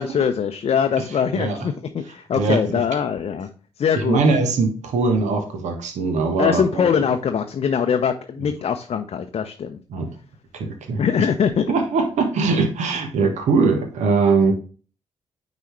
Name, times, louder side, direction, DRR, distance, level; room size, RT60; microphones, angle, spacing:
voice 1, 0.0-3.5 3.8-4.2 6.4-9.8 11.0-11.6, left 7 dB, 45° left, 6 dB, 0.7 m, -22 dB
voice 2, 1.3-1.7 2.3-2.8 4.0-7.0 9.9-10.1 10.5-11.0 11.7-14.5, right 4 dB, 60° right, 5 dB, 1.3 m, -21 dB
9.3 x 4.1 x 3.2 m, 0.38 s
figure-of-eight pair, 40°, 14 cm